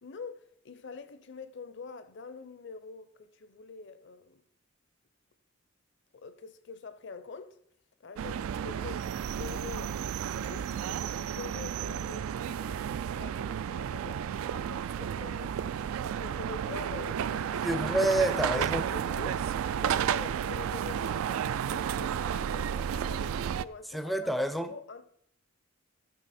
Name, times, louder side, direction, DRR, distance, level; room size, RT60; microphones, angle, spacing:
voice 1, 0.0-4.4 6.1-7.6 8.0-10.0 10.3-12.8 13.2-15.8 16.1-17.8 18.3-25.1, left 4 dB, 55° left, 0.6 m, -45 dB
sound 1, 8.2-23.6, right 8 dB, 75° right, 0.3 m, -32 dB
voice 2, 17.6-18.8 23.9-24.7, right 1 dB, ahead, 0.4 m, -28 dB
11.0 x 5.7 x 4.2 m
head